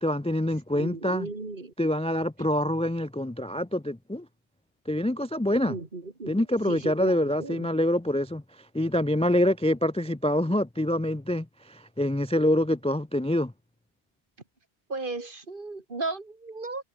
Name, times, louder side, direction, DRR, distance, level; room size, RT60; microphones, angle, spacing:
voice 1, 0.0-1.3 1.8-4.2 4.9-5.8 6.3-8.4 8.7-13.5, left 1 dB, 10° left, 0.4 m, -26 dB
voice 2, 0.7-1.7 2.4-2.5 5.6-7.7 14.9-16.8, right 3 dB, 50° right, 2.6 m, -36 dB
omnidirectional pair, 1.1 m